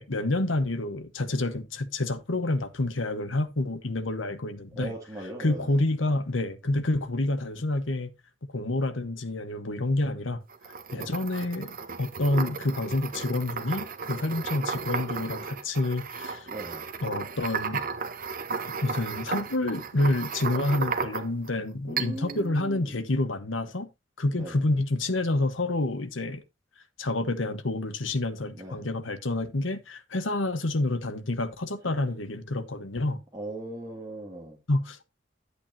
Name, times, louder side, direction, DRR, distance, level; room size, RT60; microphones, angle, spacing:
voice 1, 0.0-4.9 5.4-8.1 8.4-10.4 10.9-16.5 17.0-17.8 18.8-23.9 24.2-26.4 27.0-33.2 34.7-35.1, left 2 dB, 85° left, 1.2 m, -28 dB
voice 2, 4.8-5.8 10.9-11.1 16.5-16.9 21.9-22.9 24.3-24.6 28.5-28.9 31.8-32.1 33.3-34.6, right 1 dB, 20° right, 2.4 m, -39 dB
sound 1, 10.5-21.5 22.0-22.4, right 5 dB, 50° right, 1.0 m, -34 dB
10.5 x 8.4 x 2.8 m
head